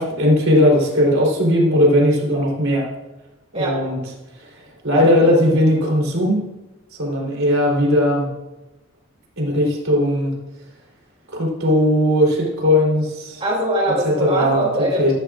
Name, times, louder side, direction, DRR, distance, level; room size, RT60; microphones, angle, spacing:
voice 1, 0.0-2.9 3.5-4.0 4.8-6.4 7.0-8.3 9.4-10.3 11.3-13.4 14.0-14.6 15.0-15.1, left 1 dB, 85° right, -2 dB, 3.6 m, -17 dB
voice 2, 13.4-15.1, right 1 dB, 30° right, -3 dB, 2.8 m, -22 dB
14.0 x 12.5 x 2.5 m, 1.0 s
head